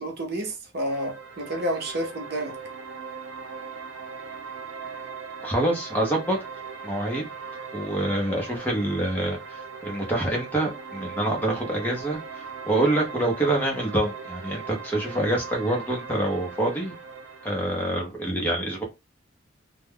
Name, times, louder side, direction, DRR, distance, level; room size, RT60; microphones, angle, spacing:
voice 1, 0.0-2.6, right 1 dB, 55° right, 0.8 m, -30 dB
sound 1, 0.9-17.9, right 5 dB, 85° right, 0.5 m, -39 dB
voice 2, 5.4-6.4 6.8-7.2 7.7-17.0 17.4-18.8, right 1 dB, 10° left, 0.7 m, -26 dB
2.3 x 2.1 x 3.4 m
head